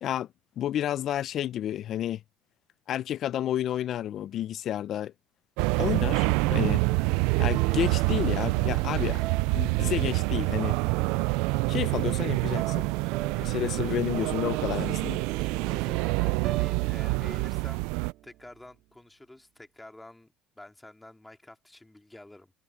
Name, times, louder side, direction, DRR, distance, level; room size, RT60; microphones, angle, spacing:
voice 1, 0.6-2.2 2.9-5.1 5.8-6.8 7.4-9.2 9.5-10.8 11.7-12.9 13.4-15.2, left 11 dB, 45° left, 0.6 m, -30 dB
sound 1, 5.6-18.1, right 25 dB, 80° right, 0.3 m, -27 dB
sound 2, 6.4-18.6, right 14 dB, 60° right, 3.7 m, -40 dB
voice 2, 13.4-14.0 14.2-17.9 18.2-22.5, left 1 dB, 5° left, 2.4 m, -49 dB
cardioid pair, 120°, 0 cm